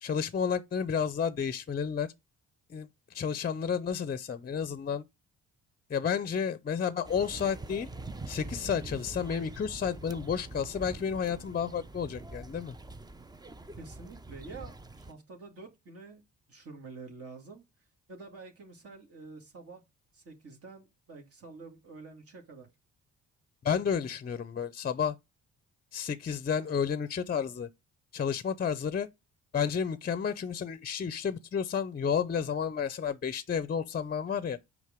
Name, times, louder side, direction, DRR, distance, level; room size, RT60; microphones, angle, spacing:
voice 1, 0.0-2.1 2.7-5.0 5.9-7.9 8.3-12.7 23.6-25.2 25.9-27.7 28.1-29.1 29.5-34.6, left 7 dB, 30° left, 0.6 m, -31 dB
sound 1, 7.0-15.1, right 2 dB, 15° right, 0.5 m, -44 dB
voice 2, 13.8-16.2 16.5-17.6 18.1-19.8 20.1-22.7 23.7-23.9, right 4 dB, 50° right, 2.2 m, -48 dB
6.5 x 5.1 x 5.0 m
cardioid pair, 90°, 30 cm